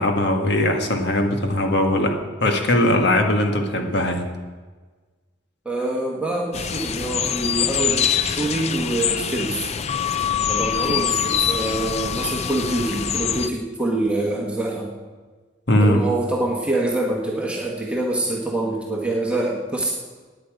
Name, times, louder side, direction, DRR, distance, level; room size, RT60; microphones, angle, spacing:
voice 1, 0.0-4.3 15.7-16.0, left 1 dB, 60° left, 4 dB, 1.7 m, -20 dB
voice 2, 5.6-9.7 10.5-14.9 15.8-19.9, right 2 dB, 5° right, -2 dB, 1.4 m, -25 dB
sound 1, 6.5-13.5, left 8 dB, 35° left, 0.5 m, -24 dB
16.5 x 9.7 x 5.0 m, 1.4 s
head